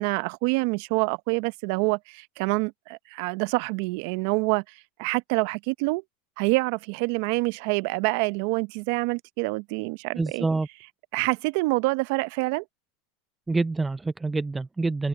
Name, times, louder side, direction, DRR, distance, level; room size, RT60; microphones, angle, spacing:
voice 1, 0.0-4.6 5.0-6.0 6.4-10.5 11.1-12.6, right 26 dB, 65° right, 0.7 m, -26 dB
voice 2, 10.2-10.7 13.5-15.1, right 3 dB, 15° right, 0.4 m, -26 dB
hypercardioid pair, 100°, 0 cm